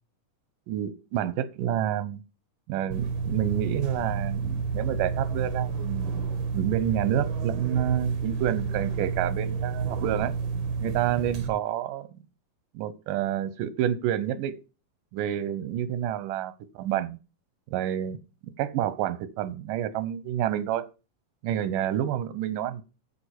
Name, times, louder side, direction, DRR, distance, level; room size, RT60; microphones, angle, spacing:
voice 1, 0.7-2.2 2.7-6.1 6.5-10.3 10.8-12.1 12.7-14.6 15.1-17.2 17.7-18.2 18.6-20.9 21.4-22.8, right 11 dB, 85° right, 2.4 m, -29 dB
sound 1, 2.9-11.5, right 5 dB, 70° right, 2.9 m, -30 dB
9.5 x 5.6 x 8.1 m
omnidirectional pair, 3.7 m